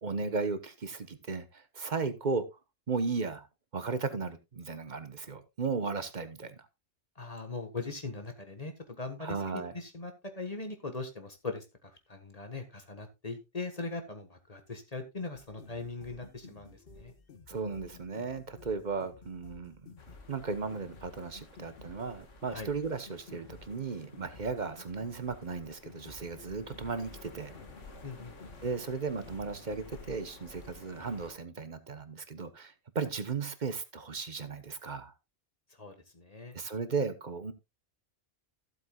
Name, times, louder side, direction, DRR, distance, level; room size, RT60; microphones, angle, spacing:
voice 1, 0.0-2.4 2.9-3.5 3.7-6.7 9.2-9.7 17.5-19.9 20.3-27.6 28.6-35.1 36.5-37.5, right 4 dB, 40° right, 11 dB, 1.1 m, -35 dB
voice 2, 7.2-17.1 22.5-22.7 28.0-28.3 35.8-36.6, left 3 dB, 35° left, 6 dB, 1.5 m, -40 dB
sound 1, 15.3-29.4, left 4 dB, 50° left, 1.3 m, -54 dB
sound 2, 20.0-31.3, left 2 dB, 85° left, 2.1 m, -53 dB
15.0 x 7.9 x 2.3 m, 0.22 s
omnidirectional pair, 1.2 m